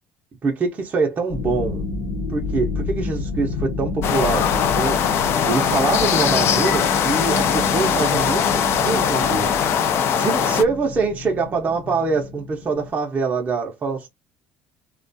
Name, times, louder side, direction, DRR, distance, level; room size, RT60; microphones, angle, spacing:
voice 1, 0.4-1.8 2.3-4.5 4.7-5.0 5.5-9.5 10.1-14.1, right 4 dB, 35° right, 0.5 m, -24 dB
sound 1, 1.3-12.9, left 3 dB, 80° left, 0.9 m, -30 dB
sound 2, 4.0-10.6, left 8 dB, 60° left, 0.4 m, -20 dB
2.3 x 2.2 x 2.6 m
cardioid pair, 105°, 5 cm